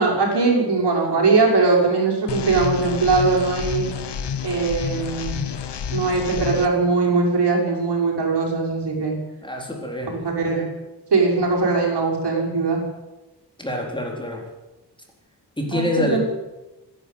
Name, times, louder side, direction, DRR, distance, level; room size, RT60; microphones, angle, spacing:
voice 1, 0.0-3.9 4.4-5.4 5.9-9.1 10.0-10.6 11.1-12.8 15.7-16.2, right 4 dB, 70° right, -1 dB, 6.4 m, -20 dB
sound 1, 2.3-6.7, left 7 dB, 80° left, 1.2 m, -29 dB
voice 2, 9.4-10.2 13.6-14.5 15.6-16.2, left 1 dB, 10° left, 0 dB, 4.0 m, -26 dB
28.5 x 11.0 x 8.6 m, 1.1 s
wide cardioid pair, 155°, 41 cm